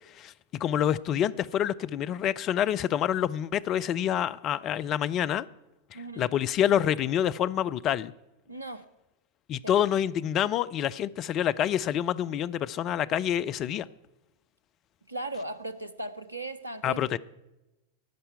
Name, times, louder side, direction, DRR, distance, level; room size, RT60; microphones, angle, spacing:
voice 1, 0.1-5.5 5.9-8.1 9.5-13.9 16.8-17.2, left 10 dB, 35° left, 16 dB, 0.4 m, -27 dB
voice 2, 5.9-6.3 8.5-8.8 9.6-9.9 15.1-17.1, right 2 dB, 85° right, 11 dB, 0.7 m, -37 dB
13.0 x 5.5 x 9.2 m, 0.99 s
figure-of-eight pair, 90°, 0 cm